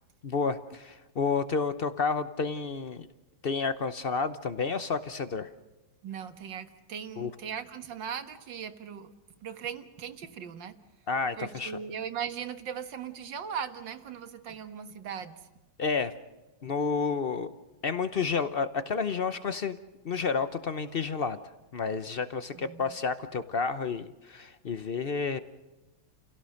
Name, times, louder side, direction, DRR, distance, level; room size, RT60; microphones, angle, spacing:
voice 1, 0.2-3.1 3.4-5.5 7.2-7.3 11.1-11.7 15.8-16.1 16.6-17.5 17.8-19.8 20.0-21.4 21.7-25.4, left 5 dB, 75° left, 12 dB, 0.5 m, -30 dB
voice 2, 6.0-9.1 9.4-10.8 11.4-15.4 22.5-22.9, right 7 dB, 65° right, 9 dB, 2.0 m, -38 dB
30.0 x 17.0 x 6.4 m, 1.1 s
omnidirectional pair, 2.3 m